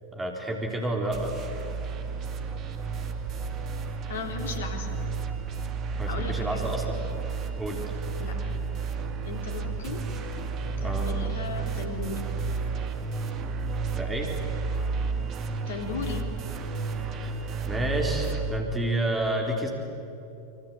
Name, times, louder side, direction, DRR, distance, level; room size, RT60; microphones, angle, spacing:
voice 1, 0.1-1.3 6.0-7.0 7.6-7.8 10.8-11.1 13.9-14.3 17.1-17.4 17.7-19.7, right 1 dB, 15° right, 1 dB, 4.0 m, -30 dB
sound 1, 1.1-18.6, right 4 dB, 30° right, 2.2 m, -32 dB
voice 2, 4.1-4.9 6.1-6.7 7.2-7.3 8.2-8.4 9.2-10.0 10.8-12.3 15.7-16.2, left 4 dB, 60° left, 4 dB, 3.7 m, -36 dB
26.5 x 24.0 x 8.6 m, 2.8 s
figure-of-eight pair, 90°, 0 cm